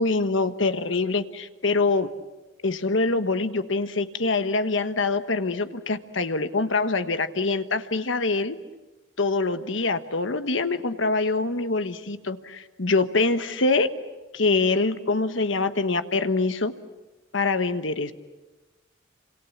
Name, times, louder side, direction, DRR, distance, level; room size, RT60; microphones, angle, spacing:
voice 1, 0.0-2.1 2.6-8.6 9.2-13.9 14.3-16.7 17.3-18.1, left 3 dB, 70° left, 10 dB, 1.3 m, -24 dB
29.0 x 26.0 x 7.3 m, 1.1 s
head